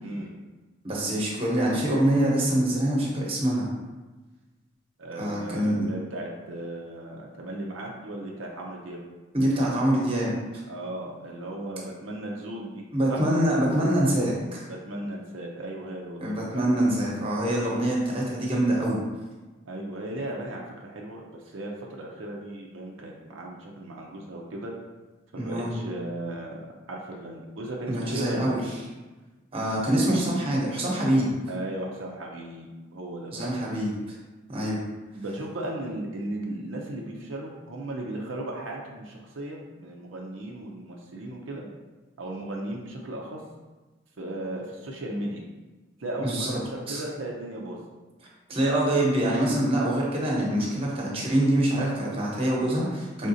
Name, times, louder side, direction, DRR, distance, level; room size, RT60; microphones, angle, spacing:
voice 1, 0.0-0.3 5.0-9.0 10.7-12.8 13.1-13.2 14.6-16.7 19.6-24.7 25.3-28.5 31.5-33.6 35.2-41.6 42.2-43.4 44.2-45.4 46.0-47.8, right 1 dB, 75° right, -2 dB, 0.6 m, -36 dB
voice 2, 0.8-3.7 5.2-5.9 9.3-10.4 12.9-14.7 16.2-19.0 25.4-25.7 27.9-28.6 29.5-31.3 33.3-33.9 34.5-34.8 46.2-46.5 46.9-47.0 48.5-53.3, right 1 dB, 30° right, -3 dB, 1.0 m, -25 dB
5.0 x 3.5 x 2.7 m, 1.2 s
head